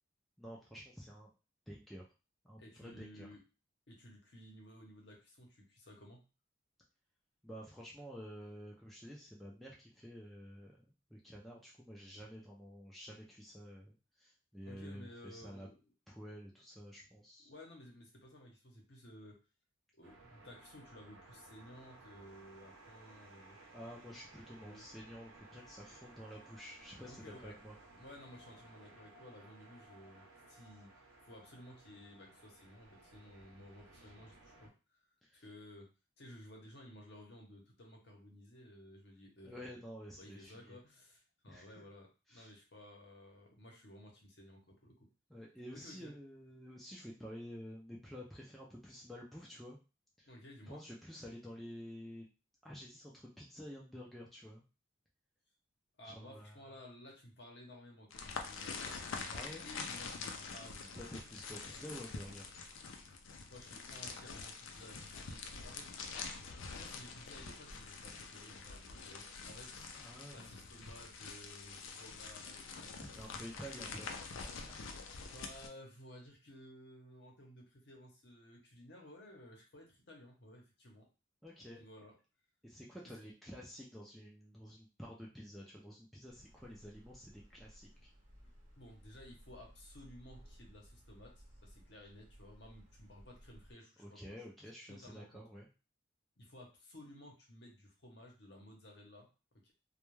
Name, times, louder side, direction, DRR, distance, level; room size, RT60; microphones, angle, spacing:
voice 1, 0.4-1.3 1.7-2.1 2.4-3.3 7.4-15.7 16.1-17.5 23.7-27.7 35.2-35.4 39.4-40.8 41.5-41.8 42.3-42.5 45.3-49.8 50.2-50.3 50.7-52.3 52.6-54.6 56.0-56.8 59.3-59.6 61.0-62.5 70.0-70.5 72.9-74.8 81.4-81.8 82.6-87.9 94.0-95.7, equal, ahead, -4 dB, 0.3 m, -50 dB
voice 2, 2.6-3.4 3.9-6.2 14.6-15.8 17.4-19.4 19.9-23.6 24.6-24.9 27.1-27.6 27.9-35.1 35.3-39.8 40.2-45.1 45.7-46.1 50.3-50.8 56.0-61.0 63.5-65.9 66.7-69.9 70.3-73.4 75.3-81.1 81.7-82.1 88.4-88.5 88.8-94.5 94.9-95.5 96.4-99.3 99.6-99.7, left 1 dB, 55° left, 0 dB, 0.8 m, -56 dB
sound 1, 20.0-34.7, right 2 dB, 90° right, 0.7 m, -59 dB
sound 2, 58.1-75.7, left 4 dB, 80° left, 0.4 m, -46 dB
sound 3, 86.3-93.7, equal, 40° right, 0.6 m, -59 dB
2.2 x 2.2 x 3.0 m, 0.32 s
head